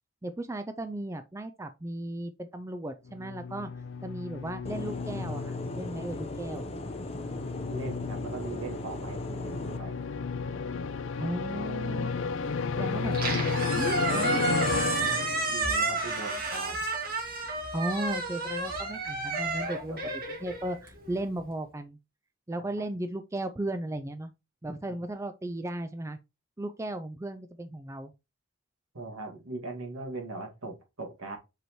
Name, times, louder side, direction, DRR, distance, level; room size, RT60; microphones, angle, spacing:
voice 1, 0.2-3.7 4.0-6.6 11.2-12.3 12.7-15.3 17.7-20.0 20.3-22.0 22.5-24.3 24.6-26.2 26.6-28.1, right 1 dB, 15° right, 0.3 m, -36 dB
sound 1, 3.1-15.7, left 5 dB, 60° left, 0.4 m, -33 dB
sound 2, 4.6-9.8, left 1 dB, 25° left, 0.7 m, -38 dB
voice 2, 7.7-9.9 15.5-16.9 19.9-20.1 28.9-31.4, right 3 dB, 75° right, 2.1 m, -40 dB
Squeak, 13.0-21.2, right 3 dB, 40° right, 2.2 m, -31 dB
7.8 x 4.7 x 3.1 m
head